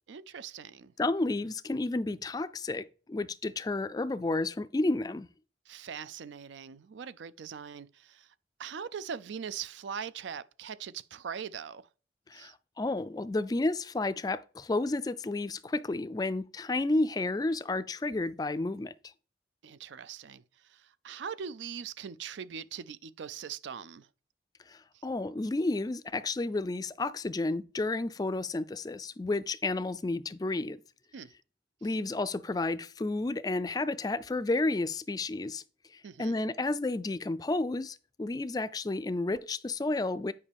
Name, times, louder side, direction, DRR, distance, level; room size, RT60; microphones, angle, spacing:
voice 1, 0.1-0.9 5.7-8.3 8.6-11.9 12.3-12.5 19.6-24.1 24.9-25.0 31.1-31.3 36.0-36.4, right 7 dB, 80° right, 0.4 m, -41 dB
voice 2, 1.0-5.3 12.3-18.9 24.7-30.8 31.8-35.6 35.9-40.3, left 2 dB, 20° left, 0.3 m, -31 dB
9.7 x 5.3 x 3.4 m
head